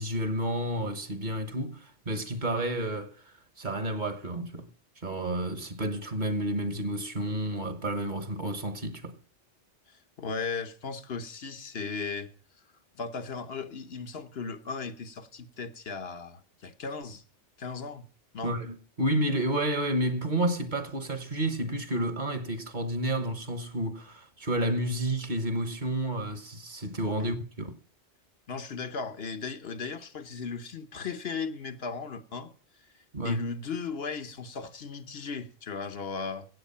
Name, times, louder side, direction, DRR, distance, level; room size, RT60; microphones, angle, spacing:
voice 1, 0.0-4.7 5.0-9.2 18.4-27.7 33.1-33.4, right 1 dB, 40° right, 1.4 m, -30 dB
voice 2, 9.9-12.3 13.0-17.2 17.6-18.1 18.3-18.6 27.2-27.3 28.5-32.5 33.2-36.5, left 5 dB, 60° left, 1.1 m, -36 dB
16.5 x 8.0 x 5.6 m
omnidirectional pair, 1.2 m